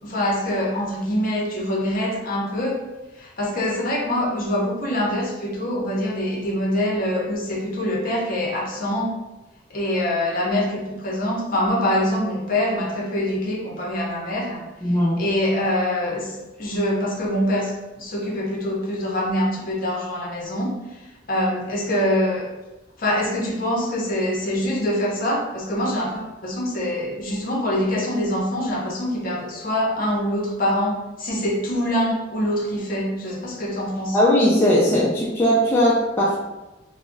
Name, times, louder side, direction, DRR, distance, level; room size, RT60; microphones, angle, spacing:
voice 1, 0.0-2.8 3.2-9.1 9.7-14.6 15.2-21.0 21.3-22.5 23.0-34.2, left 1 dB, 45° left, -2 dB, 0.6 m, -24 dB
voice 2, 14.8-15.2 34.1-36.4, equal, 10° left, -6 dB, 0.3 m, -18 dB
2.3 x 2.0 x 3.7 m, 1.1 s
head